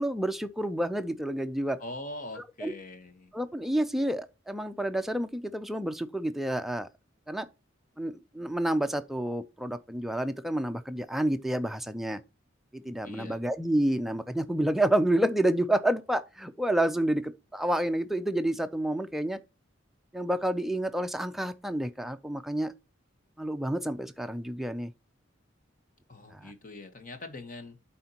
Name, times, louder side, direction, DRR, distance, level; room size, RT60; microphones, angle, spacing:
voice 1, 0.0-1.8 2.6-2.7 3.3-6.9 7.3-7.5 8.0-12.2 12.7-19.4 20.1-22.7 23.4-24.9 26.3-26.5, right 1 dB, ahead, 0.4 m, -29 dB
voice 2, 1.8-3.3 13.0-13.4 26.1-27.8, left 2 dB, 40° left, 1.2 m, -42 dB
12.0 x 4.3 x 2.9 m
head